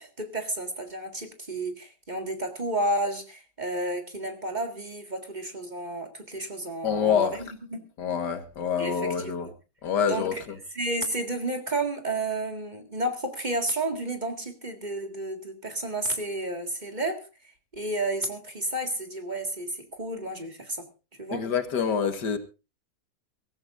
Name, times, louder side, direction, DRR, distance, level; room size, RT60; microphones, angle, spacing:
voice 1, 0.0-7.8 8.8-9.5 10.1-10.4 10.7-17.3 17.7-20.9 21.2-21.4, right 1 dB, 25° right, 2.0 m, -31 dB
voice 2, 6.8-7.3 8.0-9.5 9.8-10.6 21.3-22.4, left 7 dB, 75° left, 2.0 m, -26 dB
23.5 x 14.5 x 2.5 m
omnidirectional pair, 1.8 m